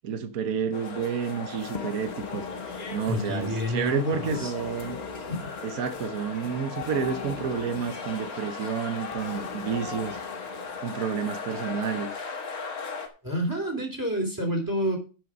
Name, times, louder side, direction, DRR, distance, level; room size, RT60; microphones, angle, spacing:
voice 1, 0.0-2.5 2.9-5.0 5.6-10.2 10.8-12.1, right 7 dB, 70° right, 1.4 m, -30 dB
sound 1, 0.7-13.1, left 5 dB, 70° left, 2.0 m, -38 dB
sound 2, 1.6-11.0, left 5 dB, 50° left, 0.5 m, -42 dB
voice 2, 3.1-4.5 5.3-5.5 13.2-15.0, equal, 10° right, 3.1 m, -28 dB
11.0 x 5.2 x 6.2 m
omnidirectional pair, 1.6 m